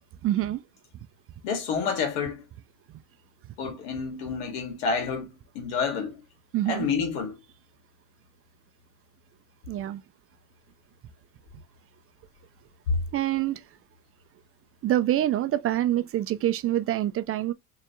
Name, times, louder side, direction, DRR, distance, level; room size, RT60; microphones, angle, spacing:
voice 1, 0.2-0.6 6.5-6.9 9.7-10.0 13.1-13.6 14.8-17.5, right 13 dB, 35° right, 0.4 m, -26 dB
voice 2, 1.4-2.4 3.6-5.3 5.5-6.2 6.7-7.4, left 5 dB, 80° left, 1.9 m, -29 dB
3.7 x 3.2 x 2.9 m
supercardioid pair, 110°, 40 cm